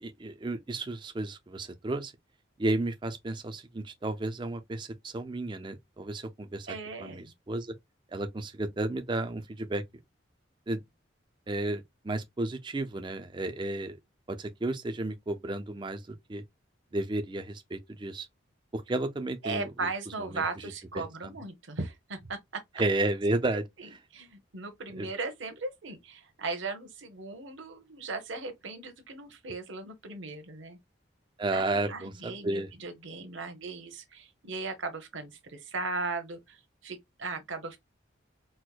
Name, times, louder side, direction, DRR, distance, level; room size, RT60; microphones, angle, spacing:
voice 1, 0.0-2.1 2.6-7.7 8.1-9.8 10.7-10.8 11.5-14.0 14.3-16.4 16.9-18.3 18.7-19.7 20.2-20.4 21.2-21.3 22.8-23.6 25.0-25.1 31.4-32.7, right 2 dB, 25° right, 0.4 m, -32 dB
voice 2, 6.7-7.3 19.4-22.4 24.1-30.8 31.5-37.8, right 3 dB, 75° right, 0.8 m, -37 dB
4.4 x 2.1 x 2.3 m
head